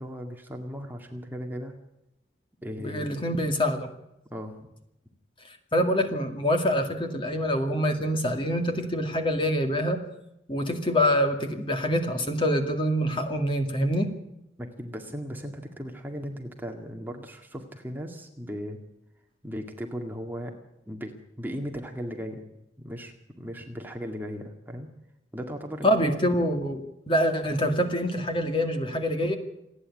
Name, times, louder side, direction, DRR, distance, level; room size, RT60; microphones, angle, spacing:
voice 1, 0.0-1.7 2.6-3.2 4.3-4.5 14.6-18.8 19.4-20.5 20.9-22.4 22.8-24.9 25.3-26.3, equal, 10° right, 3 dB, 2.1 m, -37 dB
voice 2, 2.8-3.9 5.7-10.0 10.5-14.1 25.8-29.4, equal, 25° left, 5 dB, 2.3 m, -25 dB
28.0 x 10.0 x 9.8 m, 0.85 s
head